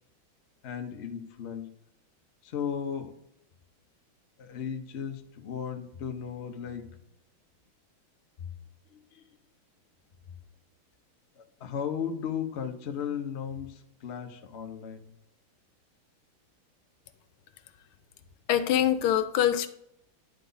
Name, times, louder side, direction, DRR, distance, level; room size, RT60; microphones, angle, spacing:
voice 1, 0.6-1.7 2.4-3.2 4.4-7.0 8.4-8.5 8.9-9.3 11.4-15.1, left 7 dB, 65° left, 5 dB, 0.6 m, -36 dB
voice 2, 18.5-19.7, left 10 dB, 80° left, 10 dB, 1.4 m, -24 dB
10.5 x 4.1 x 3.9 m, 0.76 s
omnidirectional pair, 2.3 m